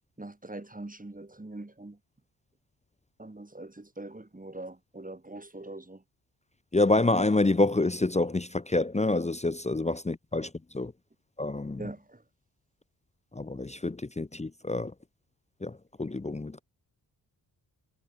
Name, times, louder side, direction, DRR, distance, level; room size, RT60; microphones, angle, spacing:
voice 1, 0.2-2.0 3.2-6.0 11.8-12.2, right 2 dB, 20° right, 5.7 m, -42 dB
voice 2, 6.7-10.9 11.4-11.8 13.3-14.9 15.6-16.6, left 2 dB, 15° left, 0.8 m, -27 dB
cardioid pair, 55°, 41 cm